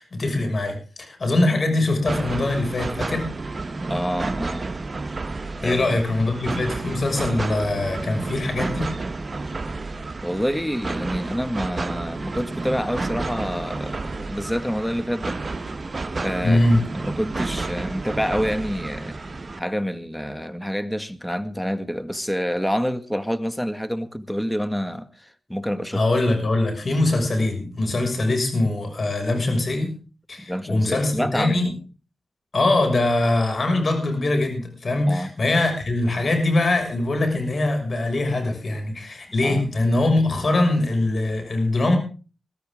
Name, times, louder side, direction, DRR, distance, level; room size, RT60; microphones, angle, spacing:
voice 1, 0.0-3.3 5.6-8.9 16.4-16.8 25.9-29.9 30.3-31.7 32.5-42.0, left 2 dB, 60° left, 6.1 m, -22 dB
sound 1, 2.1-19.6, right 3 dB, 50° right, 1.2 m, -31 dB
voice 2, 3.9-4.7 5.6-6.0 10.2-15.4 16.2-16.7 16.9-19.1 19.6-26.0 30.4-31.7 35.1-35.3 39.4-39.6, equal, 5° left, 1.7 m, -27 dB
22.0 x 13.0 x 3.7 m
cardioid pair, 40°, 0 cm